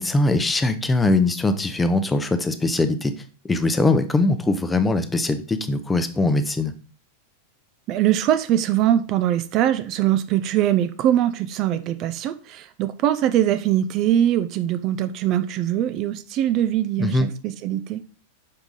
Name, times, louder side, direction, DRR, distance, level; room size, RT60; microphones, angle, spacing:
voice 1, 0.0-3.1 3.4-6.7 17.0-17.3, left 2 dB, 10° left, 9 dB, 0.7 m, -21 dB
voice 2, 7.9-18.0, right 11 dB, 40° right, 10 dB, 0.5 m, -22 dB
6.6 x 4.7 x 3.8 m, 0.38 s
figure-of-eight pair, 90°, 0 cm